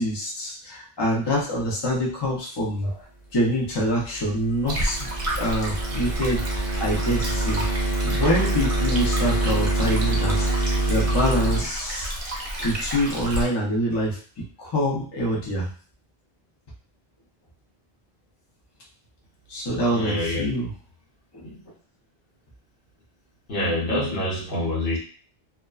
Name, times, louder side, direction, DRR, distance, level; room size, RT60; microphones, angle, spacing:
voice 1, 0.0-3.0 3.3-5.1 5.4-7.6 8.0-10.5 10.9-12.1 12.6-15.7 19.5-20.7 21.3-21.4, equal, 30° left, -4 dB, 0.6 m, -25 dB
sound 1, 3.9-11.6, right 1 dB, 55° left, 0.8 m, -25 dB
Stream, 4.7-13.4, right 1 dB, 40° right, 0.6 m, -31 dB
voice 2, 19.9-20.4 21.4-21.6 23.5-25.0, left 1 dB, 75° left, -5 dB, 1.2 m, -26 dB
2.5 x 2.2 x 2.3 m, 0.41 s
omnidirectional pair, 1.1 m